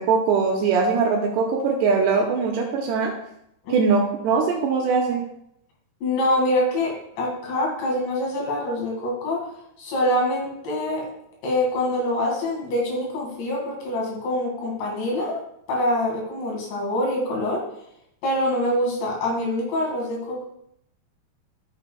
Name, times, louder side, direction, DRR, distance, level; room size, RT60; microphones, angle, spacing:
voice 1, 0.0-3.1 3.7-5.2, right 5 dB, 80° right, 0 dB, 2.6 m, -21 dB
voice 2, 6.0-9.5 9.8-11.1 11.4-15.4 15.7-17.6 18.2-20.4, left 1 dB, 70° left, -2 dB, 4.3 m, -25 dB
14.0 x 6.6 x 2.3 m, 0.77 s
omnidirectional pair, 5.6 m